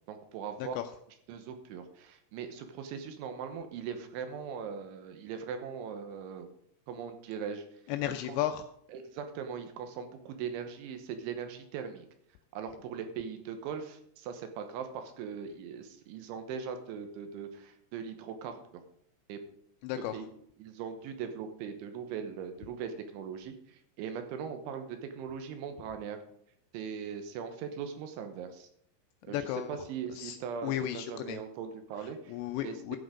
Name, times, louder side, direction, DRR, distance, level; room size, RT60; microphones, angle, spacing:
voice 1, 0.1-0.8 1.3-6.5 6.9-7.6 8.1-8.4 8.9-12.1 12.5-18.6 19.3-19.4 20.1-20.3 20.6-26.2 26.7-28.7 29.2-29.4 29.7-32.3 32.6-33.0, right 7 dB, 75° right, 7 dB, 3.3 m, -40 dB
voice 2, 0.6-0.9 7.9-8.7 19.8-20.3 29.3-29.8 30.1-31.4 32.0-33.0, left 12 dB, 90° left, 7 dB, 2.5 m, -35 dB
12.5 x 7.9 x 5.0 m, 0.67 s
omnidirectional pair, 5.7 m